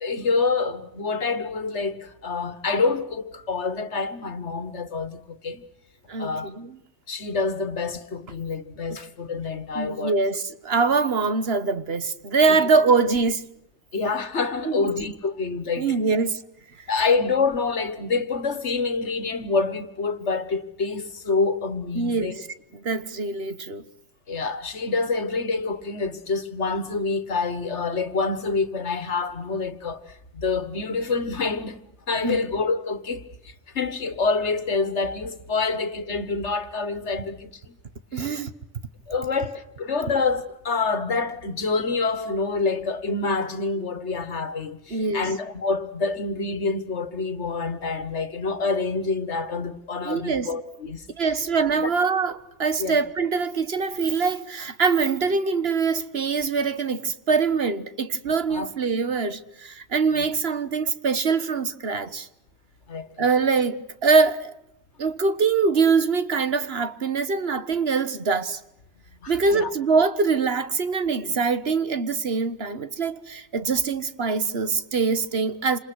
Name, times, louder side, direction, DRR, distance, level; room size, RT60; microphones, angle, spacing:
voice 1, 0.0-5.6 6.2-6.5 7.1-10.2 13.9-15.9 16.9-22.4 24.3-30.0 30.3-31.8 32.1-37.8 38.1-38.4 39.1-51.1 51.8-51.9 52.8-53.0 58.5-58.7 60.1-60.3 62.9-63.3 69.2-69.7, left 4 dB, 80° left, 1.9 m, -27 dB
voice 2, 6.1-6.8 9.7-13.4 14.6-14.8 15.8-16.4 21.9-22.5 22.8-23.8 32.2-32.4 38.1-38.5 44.9-45.3 50.0-50.5 51.2-62.3 63.2-64.5 65.0-68.6 69.3-75.8, right 4 dB, 65° right, 1.5 m, -23 dB
28.0 x 27.5 x 6.3 m
omnidirectional pair, 1.1 m